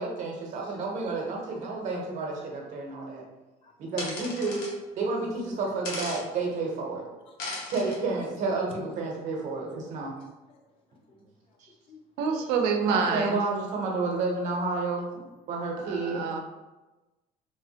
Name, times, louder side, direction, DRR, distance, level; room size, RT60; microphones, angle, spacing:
voice 1, 0.0-3.2 3.8-4.6 5.0-7.0 7.7-10.1 12.8-16.2, right 3 dB, 50° right, -1 dB, 0.7 m, -30 dB
voice 2, 1.5-1.8 2.3-2.4 2.7-2.8 3.6-3.7 4.2-4.3 5.5-5.6 7.3-7.6 10.0-10.6 10.9-11.2 11.5-11.6 11.9-13.1 15.1-15.2, left 2 dB, 35° left, 1 dB, 0.4 m, -55 dB
sound 1, 4.0-4.7 5.8-6.2 7.4-8.0, left 2 dB, 80° left, 0.9 m, -36 dB
voice 3, 12.2-13.4 15.8-16.4, right 5 dB, 90° right, 3 dB, 0.5 m, -27 dB
3.3 x 2.1 x 2.7 m, 1.1 s
cardioid pair, 160°, 16 cm